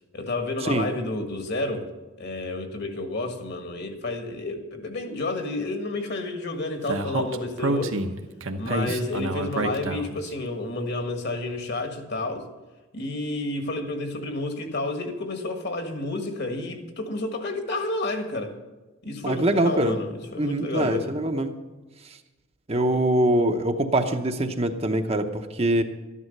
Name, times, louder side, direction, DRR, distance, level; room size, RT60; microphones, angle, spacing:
voice 1, 0.1-1.9 2.2-8.0 8.6-12.5 12.9-18.5 19.0-21.1, left 2 dB, 50° left, 6 dB, 1.7 m, -30 dB
Speech, 6.9-10.3, right 2 dB, 70° right, 1.1 m, -28 dB
voice 2, 19.2-20.0 20.4-21.5 22.7-25.8, right 1 dB, 30° right, 6 dB, 0.8 m, -23 dB
13.0 x 11.0 x 6.7 m, 1.2 s
head